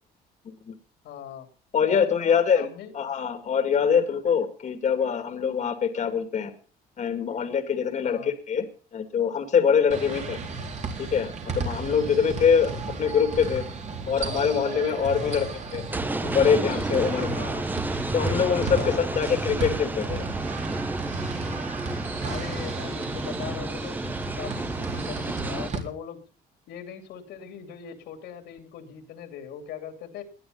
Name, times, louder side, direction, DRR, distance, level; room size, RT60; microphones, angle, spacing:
voice 1, 1.0-1.5 1.9-2.9 8.0-8.3 10.1-10.7 15.2-15.5 17.4-17.6 18.8-19.3 22.2-26.2 26.7-30.2, left 9 dB, 80° left, 7 dB, 3.0 m, -40 dB
voice 2, 1.7-2.7 2.9-6.5 7.0-8.7 8.9-10.4 11.0-12.7 13.0-13.6 14.1-15.5 15.7-15.8 16.2-17.4 18.1-20.2, left 7 dB, 45° left, 8 dB, 2.3 m, -24 dB
sound 1, 9.9-25.8, right 3 dB, 45° right, 4.2 m, -34 dB
sound 2, 15.9-25.7, right 2 dB, 10° right, 0.8 m, -31 dB
19.5 x 11.0 x 5.4 m, 0.40 s
cardioid pair, 110°, 17 cm